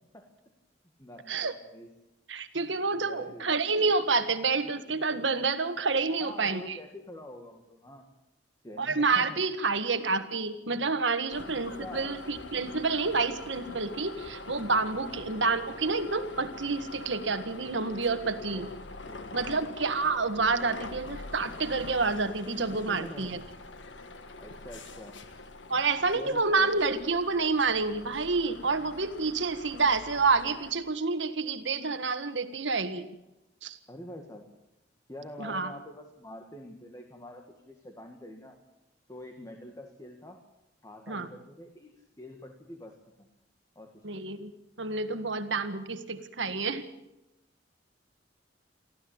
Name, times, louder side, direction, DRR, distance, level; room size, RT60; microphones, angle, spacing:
voice 1, 1.0-1.9 2.9-3.5 6.2-8.0 8.6-9.4 11.8-12.2 15.0-15.2 18.5-18.7 19.1-19.4 22.7-23.4 24.4-25.2 26.1-27.0 33.9-34.5 35.1-38.6 39.1-40.4 40.8-41.9 42.2-43.3 43.8-44.2, left 1 dB, 20° left, 4 dB, 2.0 m, -46 dB
voice 2, 2.3-6.8 8.8-18.7 19.3-23.4 25.7-33.1 33.6-33.8 35.4-35.7 41.1-41.3 44.0-44.5 44.8-46.8, right 4 dB, 85° right, 9 dB, 1.7 m, -28 dB
sound 1, 11.3-30.7, left 2 dB, 85° left, 1.7 m, -44 dB
24.0 x 14.5 x 8.8 m, 0.92 s
head